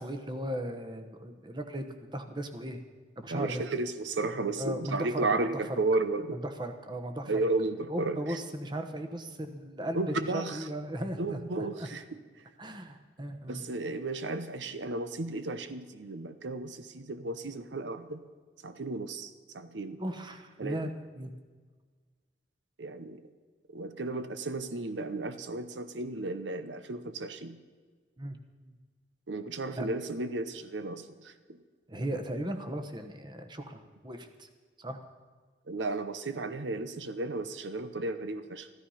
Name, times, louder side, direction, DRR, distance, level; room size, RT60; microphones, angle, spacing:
voice 1, 0.0-2.8 3.2-3.6 4.6-5.6 6.3-7.5 7.9-11.9 12.6-13.7 20.0-21.3 28.2-28.4 28.6-28.7 29.7-29.9 31.9-34.5 34.8-35.0, right 1 dB, 25° right, 7 dB, 1.0 m, -37 dB
voice 2, 3.3-6.4 7.3-8.2 9.9-10.6 11.2-12.0 13.5-18.2 18.6-19.3 19.5-20.0 20.6-20.8 22.8-23.2 23.7-27.5 29.3-31.0 35.7-38.7, right 2 dB, 85° right, 11 dB, 0.8 m, -33 dB
14.5 x 13.5 x 5.7 m, 1.5 s
head